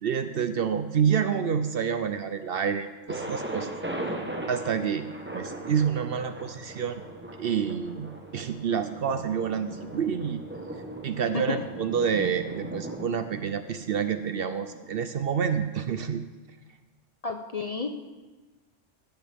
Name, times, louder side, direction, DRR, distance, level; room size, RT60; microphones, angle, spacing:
voice 1, 0.0-3.7 4.5-5.1 5.3-7.0 7.4-10.4 11.0-16.2, right 7 dB, 60° right, 10 dB, 0.7 m, -28 dB
Thunder, 3.1-14.9, right 1 dB, 10° right, 0.9 m, -38 dB
voice 2, 11.3-11.7 17.2-17.9, left 4 dB, 40° left, 5 dB, 0.6 m, -31 dB
15.0 x 12.0 x 3.5 m, 1.2 s
omnidirectional pair, 1.3 m